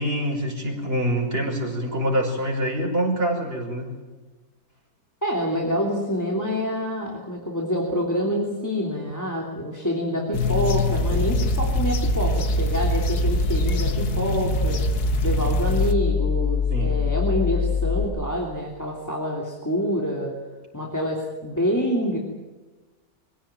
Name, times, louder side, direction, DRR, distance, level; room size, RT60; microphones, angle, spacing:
voice 1, 0.0-3.9 16.7-17.0, right 1 dB, 40° right, -1 dB, 6.1 m, -25 dB
voice 2, 5.2-14.8 15.2-20.3 20.7-22.2, equal, 10° left, -1 dB, 3.0 m, -26 dB
sound 1, 10.3-15.9, left 5 dB, 80° left, 2.0 m, -26 dB
sound 2, 10.9-18.0, left 1 dB, 55° left, 3.9 m, -24 dB
24.5 x 16.5 x 9.1 m, 1.2 s
omnidirectional pair, 1.6 m